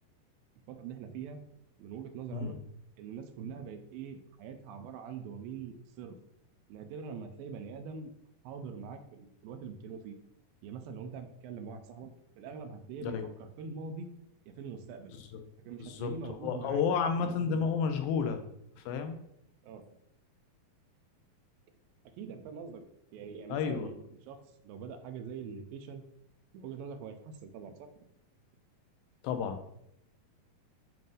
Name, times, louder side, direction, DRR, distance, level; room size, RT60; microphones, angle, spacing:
voice 1, 0.7-1.4 1.8-2.6 3.0-6.2 6.7-8.1 8.4-10.2 10.6-12.1 12.4-14.1 14.5-15.2 15.6-16.8 17.2-17.7 19.6-19.8 22.2-22.8 23.1-24.0 24.3-24.4 24.6-26.0 26.5-27.9, right 6 dB, 80° right, 8 dB, 2.2 m, -43 dB
voice 2, 15.8-16.1 16.4-18.4 18.9-19.2 23.5-23.9 29.2-29.6, left 6 dB, 80° left, 7 dB, 2.3 m, -31 dB
7.6 x 2.6 x 5.3 m, 0.77 s
omnidirectional pair, 4.3 m